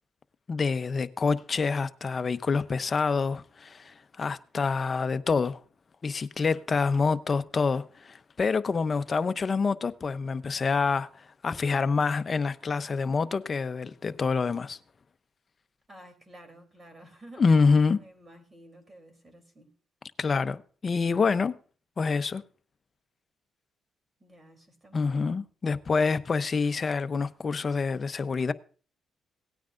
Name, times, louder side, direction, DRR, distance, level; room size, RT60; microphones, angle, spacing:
voice 1, 0.5-5.6 6.0-14.8 17.4-18.0 20.2-21.6 22.0-22.4 24.9-28.5, left 4 dB, 35° left, 0.7 m, -27 dB
voice 2, 15.9-17.5 17.9-19.7 24.2-25.4, right 1 dB, 25° right, 3.3 m, -52 dB
18.0 x 9.3 x 2.5 m
cardioid pair, 90°, 0 cm